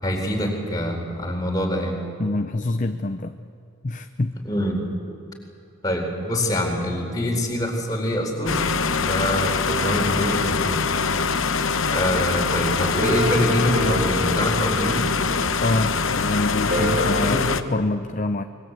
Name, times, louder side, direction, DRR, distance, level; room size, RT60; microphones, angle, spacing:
voice 1, 0.0-2.1 4.4-4.8 5.8-8.7 9.0-10.9 11.9-15.1 16.8-17.5, equal, 15° left, 0 dB, 4.1 m, -25 dB
voice 2, 2.2-3.3 3.8-4.3 15.6-18.4, left 2 dB, 35° left, 7 dB, 0.6 m, -25 dB
sound 1, 8.5-17.6, left 5 dB, 65° left, 0.9 m, -23 dB
sound 2, 9.7-15.9 16.7-17.3, right 1 dB, 35° right, 3.1 m, -31 dB
26.0 x 21.5 x 8.1 m, 2.5 s
head